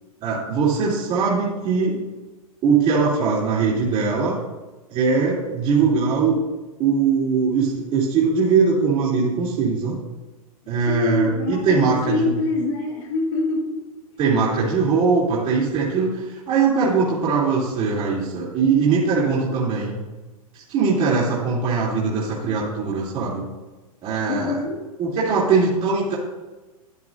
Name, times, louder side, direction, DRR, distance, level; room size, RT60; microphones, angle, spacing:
voice 1, 0.2-2.0 2.6-4.4 4.9-6.4 6.8-10.0 10.7-12.3 14.2-20.0 20.5-23.5 24.0-24.6 25.0-26.2, right 5 dB, 35° right, -7 dB, 2.8 m, -21 dB
voice 2, 10.8-14.0 24.3-24.8, left 2 dB, 60° left, -1 dB, 2.0 m, -25 dB
13.0 x 9.4 x 2.6 m, 1.2 s
hypercardioid pair, 125°, 19 cm